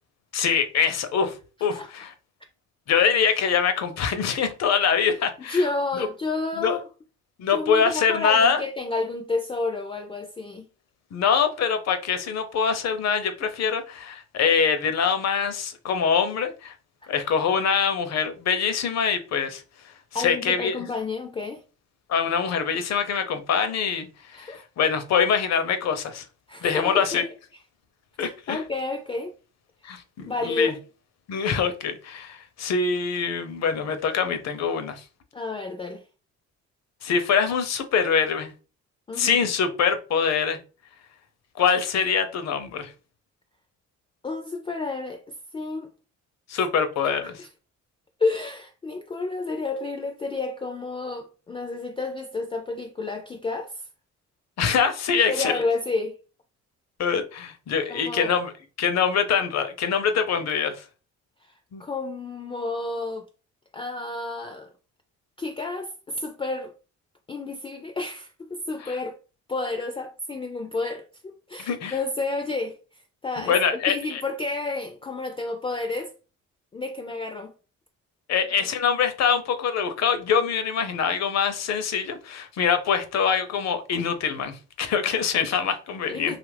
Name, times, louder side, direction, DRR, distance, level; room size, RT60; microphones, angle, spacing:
voice 1, 0.3-1.4 1.6-2.1 2.9-5.7 5.9-6.1 6.6-6.8 7.4-8.6 11.1-16.7 17.1-20.8 22.1-26.2 26.6-27.2 28.2-28.6 29.8-30.7 31.3-35.0 37.0-38.5 39.1-40.6 41.6-42.9 46.5-47.4 54.6-55.5 57.0-58.5 58.8-60.8 61.7-61.8 68.8-69.0 71.7-71.9 73.5-74.2 78.3-86.4, left 6 dB, 60° left, 0.6 m, -24 dB
voice 2, 5.5-6.9 7.5-10.7 20.1-21.6 24.3-24.6 26.5-27.3 28.2-29.3 30.3-30.8 35.3-36.0 39.1-39.4 44.2-45.9 47.2-47.5 48.2-53.8 55.3-56.2 57.9-58.4 61.5-61.6 61.8-63.2 63.7-64.7 65.4-66.7 67.3-69.2 69.5-76.1 76.7-77.5 85.5-85.6 86.1-86.4, left 3 dB, 20° left, 0.3 m, -30 dB
2.8 x 2.5 x 3.2 m
cardioid pair, 90°, 30 cm